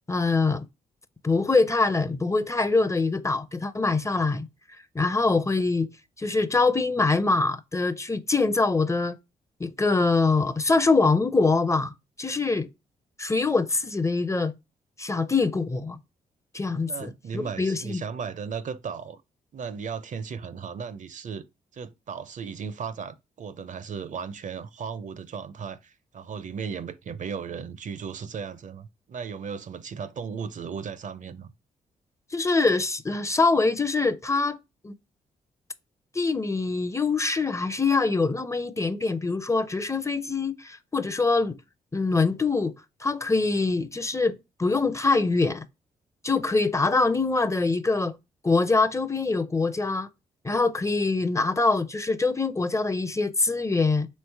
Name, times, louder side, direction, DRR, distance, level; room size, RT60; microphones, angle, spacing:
voice 1, 0.1-0.7 1.2-4.5 4.9-5.9 6.2-9.2 9.6-11.9 12.2-12.7 13.2-14.5 15.0-16.0 16.5-18.0 32.3-34.6 34.8-34.9 36.1-41.6 41.9-42.7 43.0-45.6 46.2-48.1 48.4-50.1 50.4-54.1, left 3 dB, 20° left, 0.5 m, -24 dB
voice 2, 16.9-19.2 19.5-21.4 21.7-31.5, right 6 dB, 50° right, 0.5 m, -36 dB
3.8 x 3.2 x 3.4 m
supercardioid pair, 55°, 16 cm